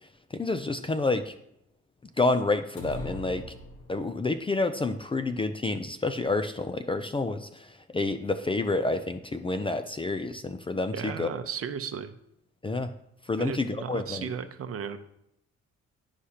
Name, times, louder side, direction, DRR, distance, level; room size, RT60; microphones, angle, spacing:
voice 1, 0.3-1.3 2.2-3.4 3.9-7.5 7.9-11.3 12.6-12.9 13.3-14.3, left 3 dB, 20° left, 9 dB, 0.4 m, -28 dB
sound 1, 2.8-4.4, left 1 dB, 75° left, 1.4 m, -40 dB
voice 2, 10.9-12.1 13.4-15.0, right 7 dB, 50° right, 10 dB, 0.7 m, -35 dB
11.5 x 5.0 x 2.9 m, 0.79 s
cardioid pair, 90°, 30 cm